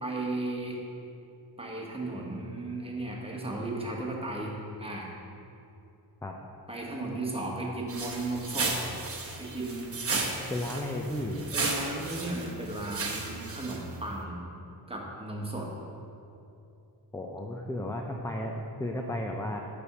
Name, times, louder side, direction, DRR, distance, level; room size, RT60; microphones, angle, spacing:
voice 1, 0.0-0.8 1.6-5.1 6.7-8.9 9.4-9.9 11.5-14.4 14.9-15.7, right 2 dB, 15° right, -2 dB, 1.2 m, -35 dB
sound 1, 7.9-14.1, right 3 dB, 30° right, 0.9 m, -34 dB
voice 2, 10.5-11.4 17.1-19.6, left 1 dB, 10° left, 1 dB, 0.4 m, -34 dB
8.5 x 3.5 x 5.8 m, 2.7 s
cardioid pair, 95°, 43 cm